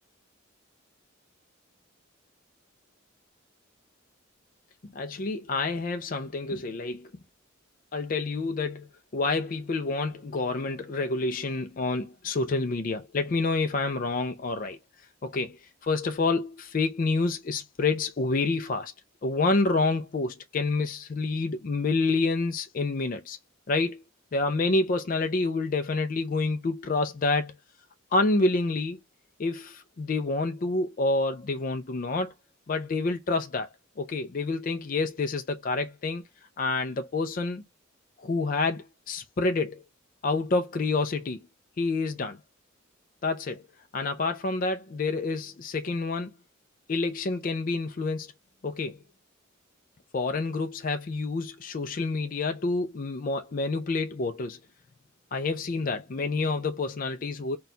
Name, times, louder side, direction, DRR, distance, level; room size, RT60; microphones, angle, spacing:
voice 1, 4.9-7.1 7.9-8.9 9.1-14.8 15.2-18.9 19.2-23.4 23.7-24.0 24.3-27.5 28.1-29.0 29.4-32.3 32.7-33.7 34.0-36.2 36.6-37.6 38.2-39.8 40.2-41.4 41.8-42.4 43.2-43.6 43.9-46.3 46.9-48.3 48.6-49.0 50.1-54.6 55.3-57.6, left 3 dB, 40° left, 0.4 m, -28 dB
4.2 x 2.3 x 3.7 m
head